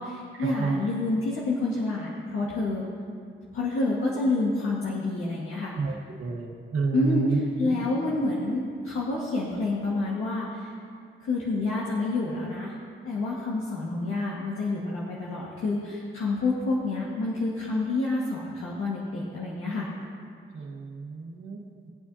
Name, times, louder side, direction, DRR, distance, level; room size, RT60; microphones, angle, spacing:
voice 1, 0.0-2.8 3.5-5.7 6.9-10.7 11.2-12.7 13.0-19.9, left 2 dB, 90° left, -6 dB, 1.6 m, -28 dB
voice 2, 6.2-7.4 7.7-7.8 20.5-21.6, right 4 dB, 80° right, -1 dB, 1.2 m, -29 dB
20.5 x 8.4 x 2.7 m, 2.3 s
cardioid pair, 80°, 21 cm